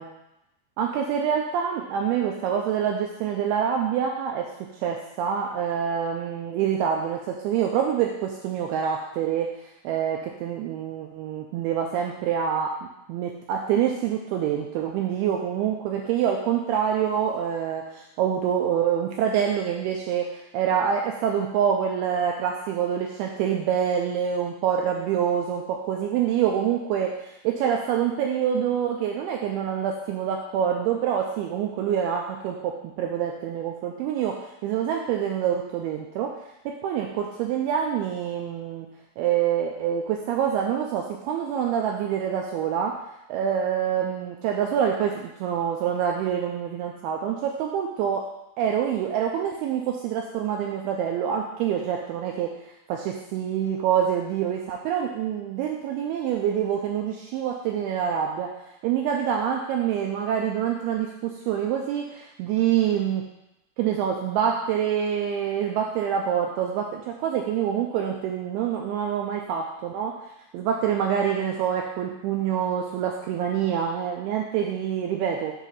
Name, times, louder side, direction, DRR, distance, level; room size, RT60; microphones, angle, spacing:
voice 1, 0.8-4.5 4.8-36.3 36.8-38.9 39.2-42.9 43.3-48.2 48.6-52.5 52.9-58.5 58.8-63.2 63.8-70.1 70.5-75.5, right 8 dB, 85° right, 1 dB, 2.3 m, -26 dB
7.4 x 2.7 x 5.5 m, 0.87 s
omnidirectional pair, 4.9 m